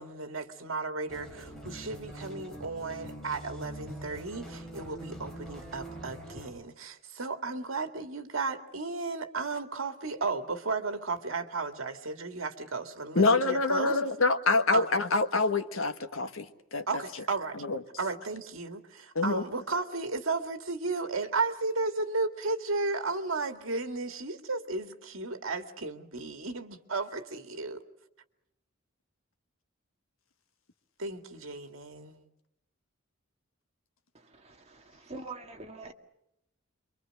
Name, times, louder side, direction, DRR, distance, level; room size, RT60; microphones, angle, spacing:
voice 1, 0.0-14.0 14.7-14.9 16.9-17.6 18.0-27.8 31.0-32.3, right 3 dB, 75° right, 2.0 m, -34 dB
sound 1, 1.1-6.5, right 1 dB, ahead, 7.1 m, -43 dB
voice 2, 13.1-16.8 17.6-17.8 19.1-19.4, left 3 dB, 80° left, 1.5 m, -26 dB
voice 3, 34.1-35.9, right 3 dB, 30° right, 2.0 m, -45 dB
27.5 x 24.0 x 6.6 m
head